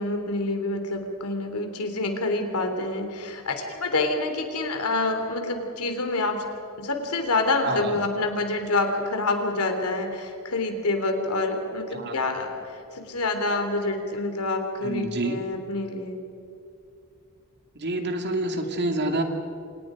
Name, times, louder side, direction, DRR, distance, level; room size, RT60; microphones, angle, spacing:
voice 1, 0.0-6.4 6.8-16.2, left 2 dB, 80° left, 5 dB, 3.5 m, -27 dB
voice 2, 14.8-15.4 17.8-19.2, right 2 dB, 50° right, 4 dB, 2.6 m, -27 dB
28.5 x 27.5 x 5.2 m, 2.7 s
head